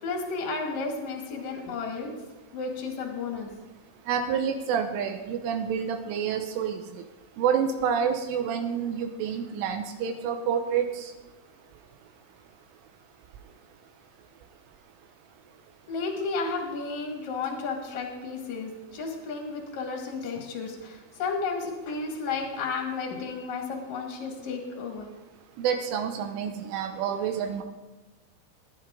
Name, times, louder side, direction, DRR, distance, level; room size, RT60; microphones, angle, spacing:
voice 1, 0.0-2.1 2.5-3.5 15.9-25.1, left 4 dB, 50° left, 1 dB, 2.5 m, -33 dB
voice 2, 4.1-7.0 7.4-11.1 25.6-27.6, right 7 dB, 80° right, 5 dB, 3.3 m, -28 dB
21.0 x 11.0 x 3.8 m, 1.2 s
omnidirectional pair, 5.7 m